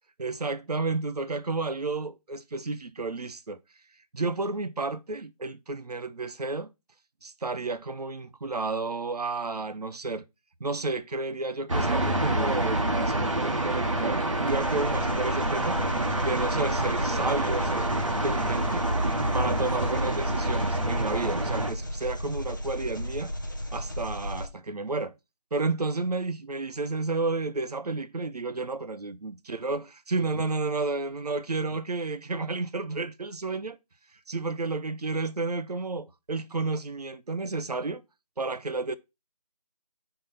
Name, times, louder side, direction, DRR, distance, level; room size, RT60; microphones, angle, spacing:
voice 1, 0.2-3.6 4.1-6.7 7.2-10.2 10.6-15.8 16.2-18.9 19.3-23.3 23.7-25.1 25.5-33.8 34.3-38.0 38.4-39.0, right 3 dB, 75° right, 0.7 m, -31 dB
sound 1, 11.7-21.7, right 1 dB, 50° right, 1.1 m, -27 dB
Engine, 14.5-24.5, equal, 30° left, 0.7 m, -35 dB
5.4 x 3.9 x 5.2 m
figure-of-eight pair, 180°, 21 cm